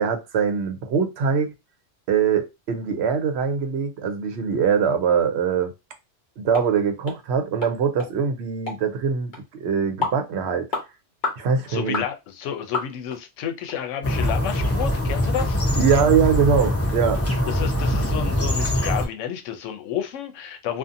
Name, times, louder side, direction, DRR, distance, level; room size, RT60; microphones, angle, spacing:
voice 1, 0.0-1.5 2.1-5.7 6.4-10.7 11.4-12.0 15.8-17.2, right 6 dB, 65° right, 0.8 m, -22 dB
sound 1, 6.5-6.7 7.1-7.2 7.6-7.7 8.0-8.1 8.7-8.8 9.3-9.4 10.0-10.2 10.7-10.9 11.2-11.4 11.9-12.1 12.7-13.2 13.7-13.8 14.3-14.4 14.8-14.9, left 3 dB, 45° left, 0.9 m, -29 dB
voice 2, 11.7-15.6 17.5-20.8, left 9 dB, 85° left, 0.9 m, -31 dB
sound 2, 14.0-19.1, left 1 dB, 25° left, 0.3 m, -23 dB
2.6 x 2.4 x 2.5 m
omnidirectional pair, 1.2 m